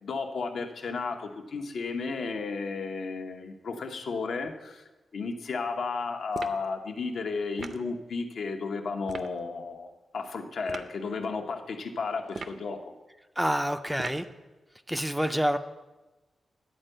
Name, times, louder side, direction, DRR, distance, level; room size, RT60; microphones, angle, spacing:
voice 1, 0.0-4.8 5.1-9.9 10.1-12.9, left 4 dB, 70° left, 4 dB, 0.9 m, -33 dB
sound 1, 6.3-6.7 7.6-7.9 9.1-9.3 10.7-10.9 12.3-12.7 14.0-14.3, right 5 dB, 60° right, 0.5 m, -39 dB
voice 2, 13.4-14.3 14.9-15.6, equal, 5° right, 9 dB, 0.4 m, -27 dB
10.5 x 4.5 x 7.7 m, 1.1 s
wide cardioid pair, 125°, 0 cm